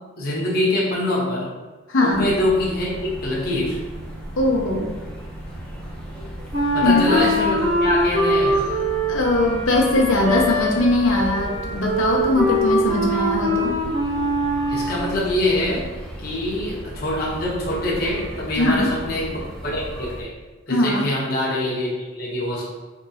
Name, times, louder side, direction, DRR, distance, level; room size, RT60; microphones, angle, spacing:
voice 1, 0.0-1.5 2.0-3.8 6.7-8.6 14.7-15.9 16.2-19.3 19.6-20.3 20.7-22.6, left 1 dB, 45° left, -5 dB, 0.9 m, -24 dB
voice 2, 1.9-2.3 4.4-4.9 6.8-7.0 9.1-13.8 18.6-18.9 20.7-21.0, left 1 dB, 80° left, -1 dB, 0.8 m, -20 dB
sound 1, 2.1-20.2, equal, 5° left, 0.6 m, -36 dB
Wind instrument woodwind instrument, 6.5-14.9, left 1 dB, 35° right, 1.2 m, -22 dB
4.0 x 3.6 x 2.8 m, 1.3 s
head